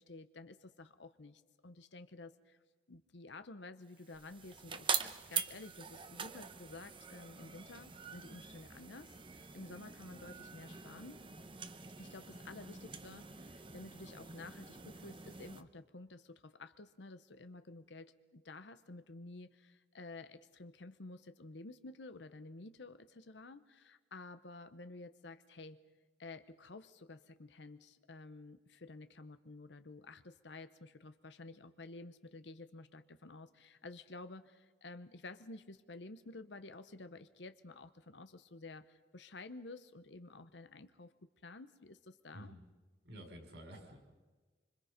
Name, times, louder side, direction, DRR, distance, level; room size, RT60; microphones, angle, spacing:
voice 1, 0.0-2.6 2.9-4.9 5.2-11.2 12.0-25.9 26.2-41.1 41.4-42.5, left 2 dB, 75° left, 10 dB, 0.9 m, -52 dB
sound 1, 3.9-15.6, right 7 dB, 25° right, 0.9 m, -44 dB
voice 2, 43.1-44.0, equal, 70° right, 3 dB, 5.3 m, -50 dB
26.0 x 26.0 x 5.2 m, 1.3 s
head